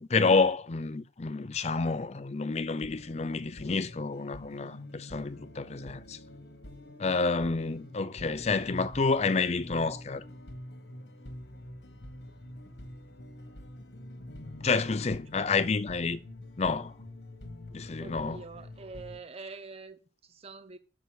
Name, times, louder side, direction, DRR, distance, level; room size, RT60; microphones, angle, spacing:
voice 1, 0.0-6.2 7.0-10.2 14.6-16.2 16.6-16.9 17.7-18.4, left 4 dB, 35° left, 0.5 m, -29 dB
sound 1, 2.8-19.2, left 1 dB, 70° left, 1.4 m, -46 dB
voice 2, 18.0-20.8, right 4 dB, 35° right, 0.6 m, -46 dB
6.8 x 6.2 x 6.4 m
head